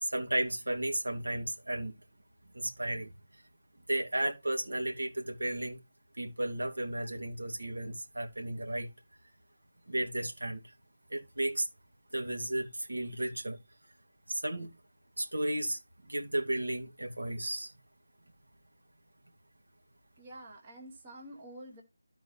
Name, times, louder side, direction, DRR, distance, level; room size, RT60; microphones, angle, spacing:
voice 1, 0.0-1.9 2.5-3.1 3.9-5.8 6.2-8.9 9.9-10.6 11.1-11.7 12.1-13.6 14.3-14.7 15.2-17.7, right 1 dB, 65° right, 2.0 m, -34 dB
voice 2, 20.2-21.8, right 1 dB, 15° right, 1.4 m, -48 dB
13.0 x 4.5 x 4.1 m
figure-of-eight pair, 165°, 0 cm